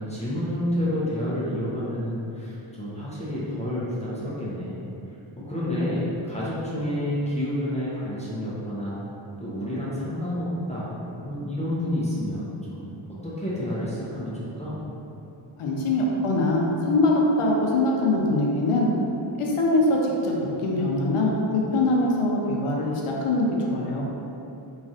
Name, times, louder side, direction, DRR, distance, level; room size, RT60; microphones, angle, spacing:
voice 1, 0.0-4.8 5.4-9.0 9.4-14.8, left 1 dB, 15° left, -9 dB, 0.5 m, -29 dB
voice 2, 15.6-18.9 19.4-24.0, left 2 dB, 80° left, -2 dB, 0.6 m, -23 dB
3.0 x 2.4 x 2.6 m, 2.8 s
wide cardioid pair, 85°, 50 cm